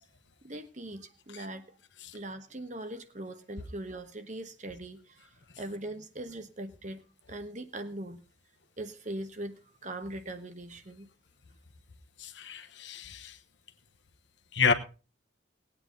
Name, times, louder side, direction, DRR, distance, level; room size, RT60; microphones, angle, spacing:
voice 1, 0.4-1.8 2.1-7.0 7.3-8.2 8.8-11.1, right 1 dB, 40° right, 9 dB, 1.2 m, -41 dB
voice 2, 12.2-13.3 14.5-14.7, left 5 dB, 65° left, 7 dB, 1.2 m, -29 dB
19.0 x 8.9 x 3.9 m, 0.34 s
head